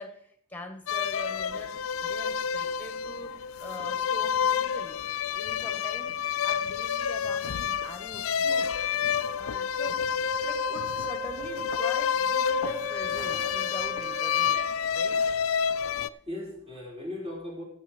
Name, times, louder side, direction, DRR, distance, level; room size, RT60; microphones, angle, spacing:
voice 1, 0.0-1.7 2.0-3.3 3.6-5.0 5.3-6.2 6.4-8.7 9.3-10.0 10.4-14.6 14.9-15.2, left 1 dB, 10° left, 6 dB, 1.7 m, -42 dB
sound 1, 0.9-16.1, left 7 dB, 80° left, 0.4 m, -29 dB
voice 2, 9.0-9.8 16.1-17.6, left 1 dB, 30° right, -2 dB, 4.5 m, -39 dB
Wind instrument woodwind instrument, 10.2-14.6, right 5 dB, 15° right, 0.5 m, -40 dB
16.5 x 7.6 x 4.6 m, 0.65 s
head